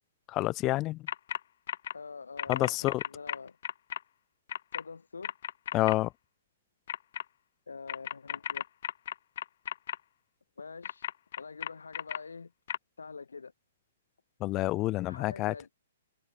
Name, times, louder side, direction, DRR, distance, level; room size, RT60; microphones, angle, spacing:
voice 1, 0.3-1.0 2.5-3.0 5.7-6.1 14.4-15.5, left 18 dB, 30° left, 1.1 m, -28 dB
sound 1, 1.1-1.4 1.7-1.9 2.4-4.0 4.5-4.8 5.2-5.9 6.9-7.2 7.9-10.0 10.8-12.2 12.7-12.8, left 10 dB, 60° left, 0.4 m, -34 dB
voice 2, 1.9-3.6 4.7-5.3 7.7-8.6 10.6-11.1 11.4-12.5 13.0-13.5 15.1-15.7, left 4 dB, 90° left, 7.9 m, -45 dB
hypercardioid pair, 135°, 0 cm